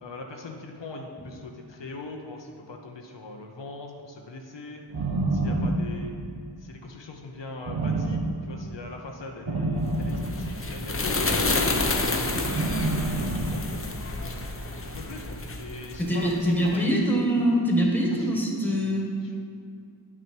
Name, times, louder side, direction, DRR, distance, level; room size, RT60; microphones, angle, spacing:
voice 1, 0.0-4.8 5.3-6.1 6.6-12.5 13.1-14.4 14.8-16.9 18.1-19.4, left 3 dB, 70° left, 2 dB, 0.8 m, -41 dB
sound 1, 4.9-6.4 7.7-8.7 9.5-11.0 12.3-13.8, right 2 dB, 55° right, 0.8 m, -28 dB
sound 2, 9.9-16.6, left 2 dB, 30° left, 0.7 m, -29 dB
voice 2, 16.0-19.1, equal, 5° left, -1 dB, 1.6 m, -24 dB
9.4 x 6.1 x 4.5 m, 2.4 s
wide cardioid pair, 60°, 45 cm